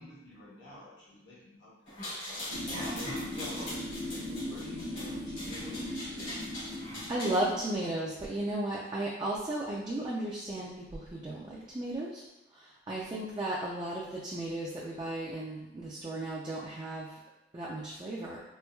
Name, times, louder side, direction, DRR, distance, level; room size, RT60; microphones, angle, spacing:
voice 1, 0.0-1.7 2.0-6.0, left 1 dB, 70° left, -7 dB, 1.0 m, -50 dB
sound 1, 1.9-7.4, left 1 dB, 90° left, 1.5 m, -41 dB
sound 2, 2.5-8.0, left 1 dB, 55° right, 0.8 m, -39 dB
voice 2, 7.1-12.2 12.5-17.2 17.5-18.4, right 1 dB, 20° right, -5 dB, 0.3 m, -35 dB
4.3 x 2.2 x 2.2 m, 0.95 s
head